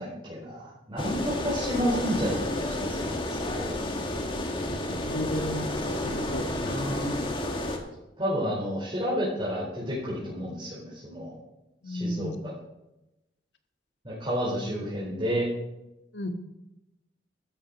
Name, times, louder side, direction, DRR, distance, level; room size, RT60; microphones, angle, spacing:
voice 1, 0.0-3.8 7.8-7.9 8.2-11.4 11.8-12.3 14.0-15.5, equal, 30° right, -8 dB, 4.5 m, -31 dB
sound 1, 1.0-7.8, left 1 dB, 30° left, 1.8 m, -31 dB
voice 2, 4.9-7.1 11.8-12.4 16.1-16.3, equal, 80° left, 5 dB, 1.8 m, -33 dB
14.0 x 12.5 x 4.3 m, 0.94 s
head